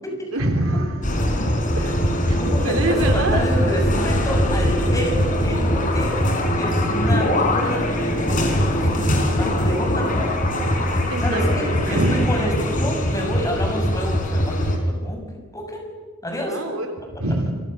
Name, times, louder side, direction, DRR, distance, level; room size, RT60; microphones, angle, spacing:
voice 1, 0.3-1.1 2.3-3.4 11.1-12.3 16.5-17.5, right 1 dB, 90° right, 4 dB, 3.5 m, -25 dB
sound 1, 1.0-14.8, equal, 40° left, 4.6 m, -21 dB
voice 2, 2.4-6.1 6.6-10.3 11.2-11.6 11.9-15.3 15.5-15.8 16.2-16.6, equal, 15° left, 2 dB, 6.9 m, -29 dB
28.0 x 24.0 x 6.8 m, 1.4 s
head